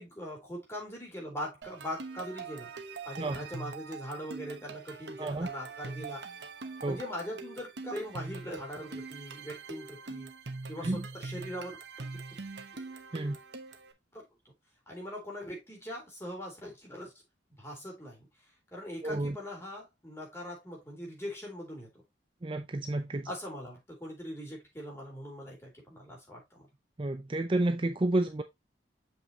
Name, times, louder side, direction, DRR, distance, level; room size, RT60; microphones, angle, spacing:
voice 1, 0.0-2.7 3.1-6.2 6.8-10.3 10.7-11.7 14.1-14.2 14.9-17.1 17.6-18.3 18.7-21.9 23.3-26.7, equal, 15° left, 3.6 m, -41 dB
sound 1, 1.6-13.9, right 4 dB, 65° right, 1.1 m, -43 dB
voice 2, 19.0-19.4 22.4-23.3 27.0-28.4, right 2 dB, 25° right, 0.5 m, -30 dB
7.4 x 5.7 x 2.9 m
head